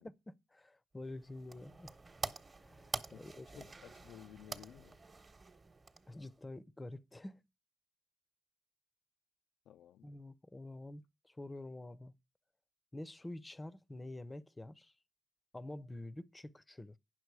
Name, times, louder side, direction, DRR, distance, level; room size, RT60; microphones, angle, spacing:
voice 1, 0.0-1.9 2.6-3.6 6.1-7.4 10.0-12.1 12.9-14.9 15.5-17.0, left 2 dB, 15° left, 0.6 m, -48 dB
sound 1, 1.0-6.4, right 3 dB, 30° right, 1.1 m, -47 dB
voice 2, 3.1-5.0 9.7-10.1, left 11 dB, 80° left, 0.4 m, -56 dB
9.2 x 6.2 x 4.7 m
cardioid pair, 90°, 0 cm